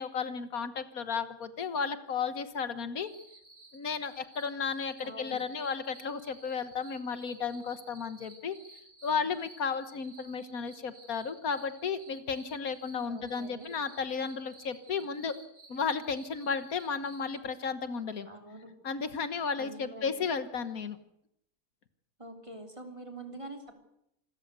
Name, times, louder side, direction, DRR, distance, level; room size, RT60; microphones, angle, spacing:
voice 1, 0.0-3.1 3.7-8.6 9.0-15.4 15.7-18.3 18.8-21.0, left 5 dB, 75° left, 11 dB, 1.7 m, -34 dB
sound 1, 3.0-17.4, right 2 dB, 65° right, 3.8 m, -55 dB
voice 2, 5.0-5.4 13.1-13.8 18.3-18.7 19.6-20.2 22.2-23.8, right 2 dB, 20° right, 4 dB, 3.5 m, -45 dB
27.0 x 14.0 x 8.2 m, 0.78 s
omnidirectional pair, 1.5 m